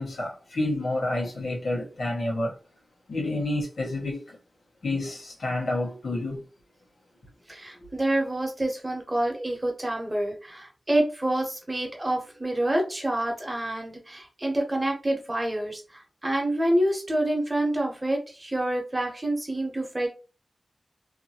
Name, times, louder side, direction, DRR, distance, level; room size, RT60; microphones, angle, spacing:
voice 1, 0.0-2.6 3.1-4.4 4.8-6.4, left 2 dB, 90° left, 1.0 m, -29 dB
voice 2, 7.5-20.1, right 1 dB, 20° right, 0.9 m, -27 dB
2.7 x 2.5 x 2.8 m
wide cardioid pair, 110°, 0 cm